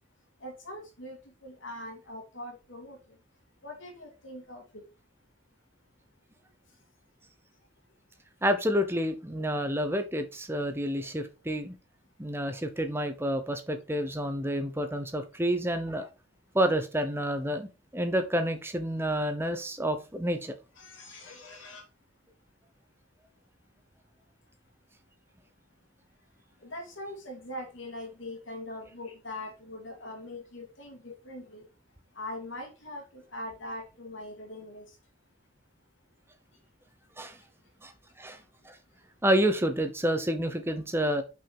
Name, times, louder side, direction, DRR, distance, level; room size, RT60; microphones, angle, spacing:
voice 1, 0.4-1.2 1.4-3.0 3.6-4.6 20.8-21.8 26.6-31.6 32.2-34.8, left 1 dB, 75° left, 3 dB, 2.6 m, -42 dB
voice 2, 8.4-11.7 12.2-16.1 16.5-20.6 37.2-37.4 37.8-37.9 38.2-38.4 38.6-38.8 39.2-41.2, equal, 10° right, 7 dB, 0.9 m, -29 dB
6.1 x 5.6 x 4.8 m, 0.30 s
head